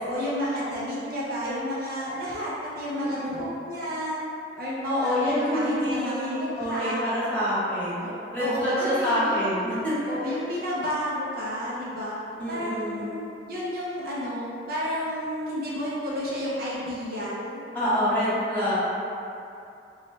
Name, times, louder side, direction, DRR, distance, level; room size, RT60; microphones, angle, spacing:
voice 1, 0.0-4.2 4.6-7.0 8.0-9.6 10.0-12.2 12.5-17.6, equal, 55° right, -7 dB, 0.6 m, -31 dB
voice 2, 2.9-3.4 4.8-10.1 12.3-13.0 17.7-18.7, equal, 10° left, -14 dB, 1.3 m, -27 dB
3.0 x 2.3 x 4.1 m, 2.6 s
head